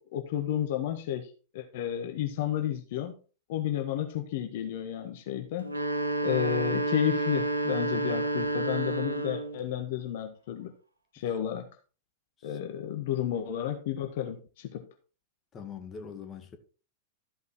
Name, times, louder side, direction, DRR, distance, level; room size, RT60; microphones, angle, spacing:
voice 1, 0.0-3.1 3.5-5.8 6.2-10.7 11.1-11.6 12.4-14.9, left 11 dB, 55° left, 1.4 m, -32 dB
sound 1, 5.6-9.6, right 2 dB, 90° right, 1.2 m, -30 dB
voice 2, 15.5-16.6, left 6 dB, 25° left, 2.0 m, -43 dB
13.5 x 5.5 x 4.5 m
figure-of-eight pair, 95°, 0 cm